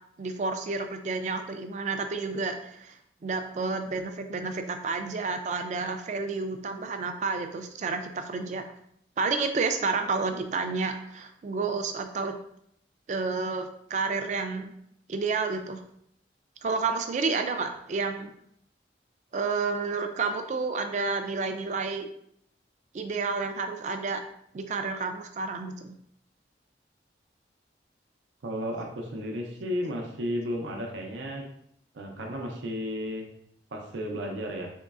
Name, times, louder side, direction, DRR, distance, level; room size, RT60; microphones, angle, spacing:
voice 1, 0.2-3.0 3.2-8.6 9.2-12.4 13.1-14.7 15.1-15.8 16.6-18.3 19.3-22.1 22.9-24.2 24.5-25.9, right 4 dB, 40° right, 7 dB, 0.3 m, -30 dB
voice 2, 28.4-31.5 31.9-33.3 33.7-34.7, equal, 90° right, 2 dB, 0.6 m, -33 dB
3.6 x 3.0 x 2.4 m, 0.70 s
head